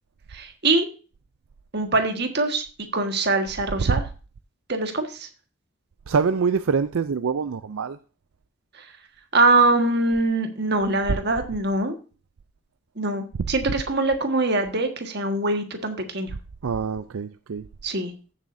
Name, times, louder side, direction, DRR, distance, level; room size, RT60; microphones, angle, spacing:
voice 1, 0.3-0.9 1.7-2.6 2.9-4.0 4.7-5.3 9.3-11.9 13.0-16.3 17.8-18.1, right 2 dB, 50° right, 5 dB, 1.6 m, -23 dB
voice 2, 6.1-8.0 16.6-17.6, right 5 dB, 75° right, 11 dB, 0.4 m, -24 dB
15.0 x 7.4 x 2.7 m, 0.35 s
head